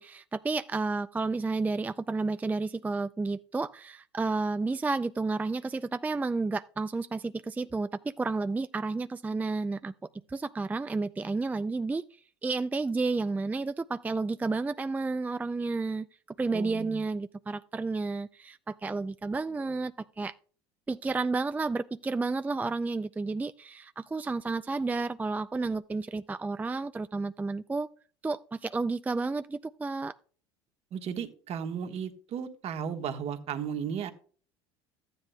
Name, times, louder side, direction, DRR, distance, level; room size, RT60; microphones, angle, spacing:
voice 1, 0.0-9.9 10.3-16.1 16.4-20.3 20.9-27.9 28.2-30.1, right 3 dB, 10° right, 0.4 m, -31 dB
voice 2, 16.5-17.0 30.9-34.1, right 7 dB, 45° right, 1.4 m, -35 dB
14.5 x 9.7 x 2.3 m
hypercardioid pair, 75°, 14 cm